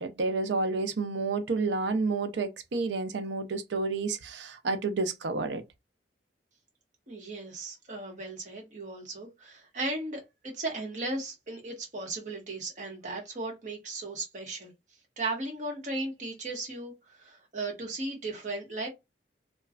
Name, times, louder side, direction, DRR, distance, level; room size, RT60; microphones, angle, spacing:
voice 1, 0.0-5.6, right 3 dB, 90° right, 0.5 m, -30 dB
voice 2, 7.1-14.7 15.2-18.9, right 2 dB, 45° right, 1.1 m, -36 dB
3.0 x 2.2 x 2.4 m
head